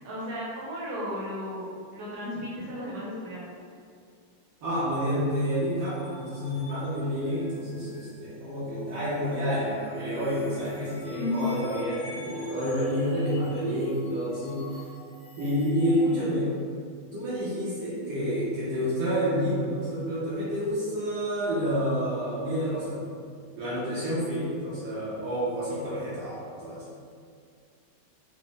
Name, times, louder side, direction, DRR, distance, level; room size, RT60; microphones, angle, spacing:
voice 1, 0.0-3.6 11.1-11.6, left 2 dB, 55° right, -7 dB, 1.2 m, -34 dB
voice 2, 4.6-14.7 15.4-16.5 17.1-23.1 23.6-26.8, equal, 75° right, -10 dB, 1.5 m, -29 dB
sound 1, 5.5-16.1, left 2 dB, 60° left, 1.1 m, -48 dB
4.0 x 2.1 x 3.5 m, 2.2 s
omnidirectional pair, 2.1 m